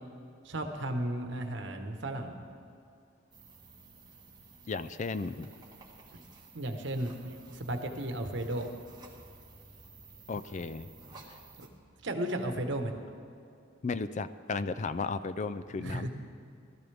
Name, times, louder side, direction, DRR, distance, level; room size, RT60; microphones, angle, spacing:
voice 1, 0.4-2.4 6.1-6.2 6.5-8.7 11.6-11.7 12.0-12.9 15.8-16.1, right 1 dB, 70° right, 5 dB, 1.3 m, -34 dB
sound 1, 3.3-11.7, right 3 dB, 20° right, 2.0 m, -54 dB
voice 2, 4.7-5.5 10.3-10.9 13.8-16.1, left 4 dB, 40° left, 13 dB, 0.4 m, -34 dB
19.0 x 13.5 x 3.5 m, 2.4 s
head